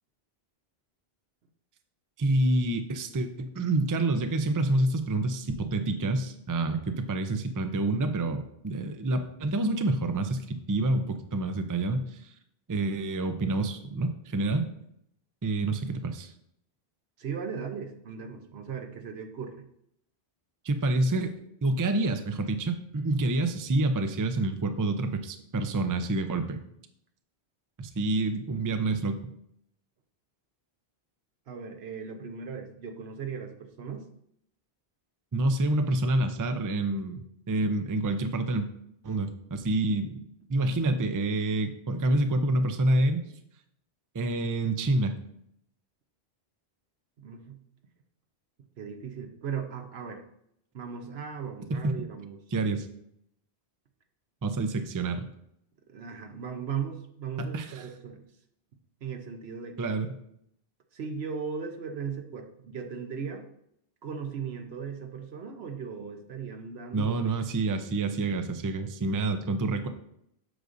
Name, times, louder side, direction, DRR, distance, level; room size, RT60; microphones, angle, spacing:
voice 1, 2.2-12.3 12.7-14.7 15.4-16.3 20.6-21.3 21.6-26.6 27.8-29.2 35.3-37.2 37.5-38.7 39.0-40.2 40.5-43.2 44.1-45.1 51.7-51.9 52.5-52.9 54.4-55.3 57.4-57.8 59.8-60.2 66.9-69.9, right 2 dB, 30° right, 7 dB, 0.4 m, -27 dB
voice 2, 17.2-19.6 31.5-34.1 47.2-47.6 48.8-50.2 50.7-52.4 55.9-58.2 59.0-59.8 60.9-63.5 64.0-67.1, right 6 dB, 75° right, 5 dB, 1.1 m, -37 dB
7.9 x 6.4 x 2.6 m, 0.73 s
omnidirectional pair, 1.1 m